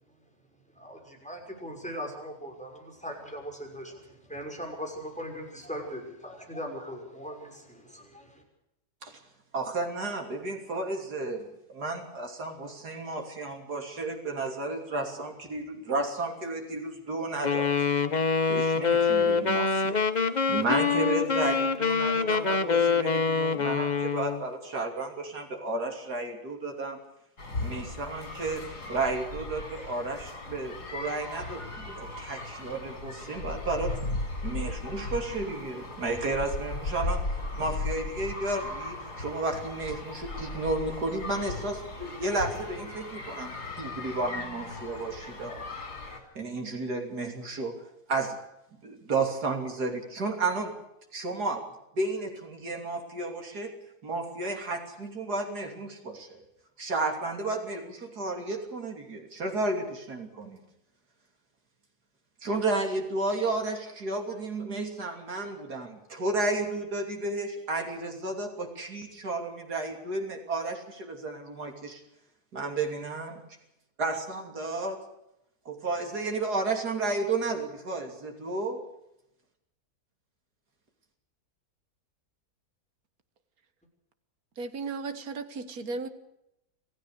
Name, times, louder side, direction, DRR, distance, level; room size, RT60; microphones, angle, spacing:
voice 1, 0.7-8.4, equal, 5° left, 1 dB, 6.0 m, -40 dB
voice 2, 9.5-17.7 18.5-27.0 27.6-28.6 28.9-34.0 34.4-37.3 37.6-45.6 46.4-47.7 48.1-48.4 48.8-50.7 51.1-51.6 51.9-53.7 54.0-56.4 56.8-60.6 62.4-72.0 72.5-73.4 74.0-75.0 75.7-78.8, right 2 dB, 85° right, 2 dB, 3.6 m, -32 dB
Wind instrument woodwind instrument, 17.4-24.4, left 5 dB, 30° left, 1.0 m, -25 dB
sound 1, 27.4-46.2, left 2 dB, 85° left, 4.9 m, -37 dB
voice 3, 84.6-86.1, right 4 dB, 65° right, 9 dB, 2.0 m, -35 dB
26.5 x 16.0 x 6.6 m, 0.84 s
omnidirectional pair, 1.7 m